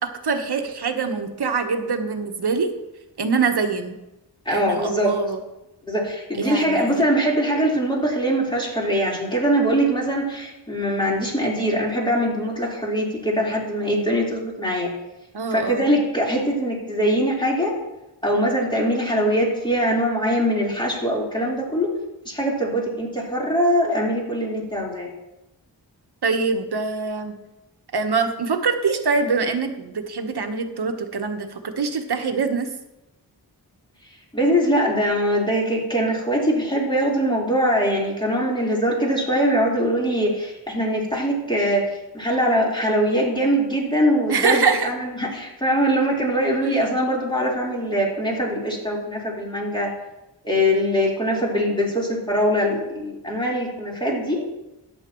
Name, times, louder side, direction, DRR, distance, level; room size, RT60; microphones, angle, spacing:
voice 1, 0.0-2.7 3.2-4.0 4.5-5.4 6.4-7.0 15.3-16.0 26.2-27.3 27.9-32.7 44.3-44.9, right 4 dB, 65° right, 6 dB, 1.2 m, -24 dB
voice 2, 4.5-5.1 5.8-14.9 15.5-17.8 18.2-21.9 22.3-25.1 34.3-41.8 42.1-49.9 50.4-54.4, equal, 10° left, -4 dB, 4.0 m, -22 dB
13.5 x 9.8 x 3.1 m, 0.97 s
cardioid pair, 50°, 42 cm